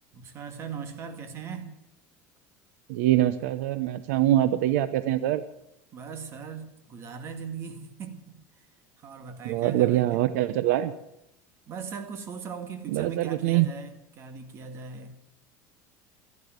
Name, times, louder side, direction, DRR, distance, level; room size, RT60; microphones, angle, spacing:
voice 1, 0.1-1.8 5.9-8.7 9.0-10.0 11.7-15.3, right 6 dB, 35° right, 7 dB, 2.0 m, -39 dB
voice 2, 2.9-5.4 9.4-10.9 12.9-13.7, right 14 dB, 80° right, 14 dB, 0.8 m, -24 dB
13.0 x 12.0 x 9.3 m, 0.78 s
cardioid pair, 160°, 8 cm